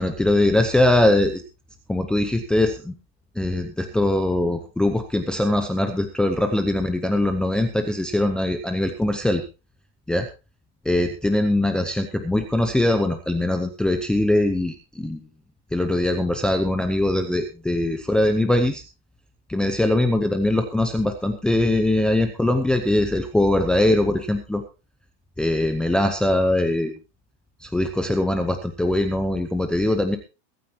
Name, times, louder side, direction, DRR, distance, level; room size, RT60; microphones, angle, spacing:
voice 1, 0.0-1.4 1.9-2.9 3.4-9.4 10.1-10.3 10.8-15.2 15.7-18.8 19.5-24.6 25.4-26.9 27.6-30.2, left 1 dB, 5° left, 5 dB, 0.7 m, -21 dB
22.5 x 9.2 x 2.9 m, 0.29 s
supercardioid pair, 175°, 33 cm